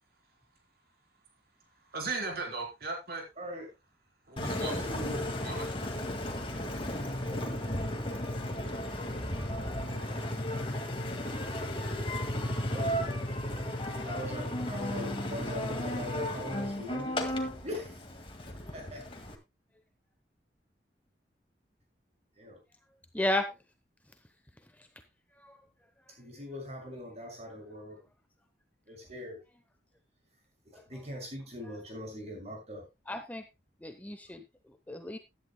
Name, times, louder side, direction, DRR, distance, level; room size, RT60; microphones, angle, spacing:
voice 1, 1.9-3.2 4.3-4.7 5.4-5.7, right 3 dB, 55° right, 1 dB, 3.7 m, -36 dB
voice 2, 3.4-3.7 4.6-5.3 7.3-7.5 9.5-10.1 12.7-12.9 14.0-17.3 17.6-18.1 18.7-19.1 22.4-22.6 26.2-28.0 28.9-29.4 30.7-32.9, equal, 40° right, 2 dB, 6.1 m, -41 dB
Engine, 4.4-19.3, left 1 dB, 30° left, 1.9 m, -34 dB
voice 3, 23.1-23.5 25.4-25.6 30.9-31.1 31.6-31.7 33.1-33.4 33.8-34.4 34.9-35.2, left 1 dB, 10° left, 7 dB, 0.8 m, -33 dB
15.5 x 11.0 x 2.2 m, 0.23 s
head